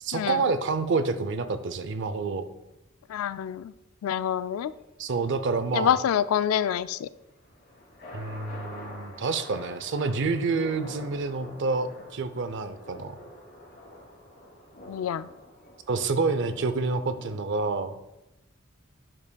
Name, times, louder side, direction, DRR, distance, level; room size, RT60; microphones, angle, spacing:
voice 1, 0.0-2.5 5.0-6.0 8.1-13.2 15.9-17.9, right 4 dB, 60° right, 11 dB, 0.5 m, -28 dB
voice 2, 3.1-3.7 4.0-4.7 5.7-7.1 14.9-15.3, left 9 dB, 85° left, 16 dB, 0.3 m, -26 dB
sound 1, 7.2-17.4, left 1 dB, 55° left, 2.7 m, -46 dB
10.5 x 5.9 x 2.3 m, 0.94 s
head